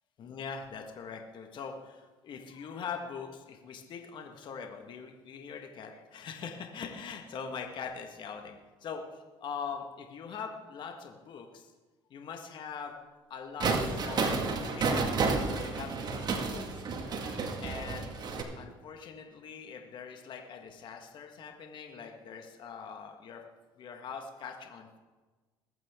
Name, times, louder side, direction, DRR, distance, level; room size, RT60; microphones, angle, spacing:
voice 1, 0.2-11.7 12.1-12.9 13.3-15.1 15.4-16.8 17.6-18.1 18.5-23.4 23.8-25.0, left 6 dB, 55° left, 3 dB, 1.6 m, -42 dB
sound 1, 13.6-18.4, right 4 dB, 45° right, 2.0 m, -31 dB
21.0 x 8.9 x 3.7 m, 1.3 s
supercardioid pair, 85°, 10 cm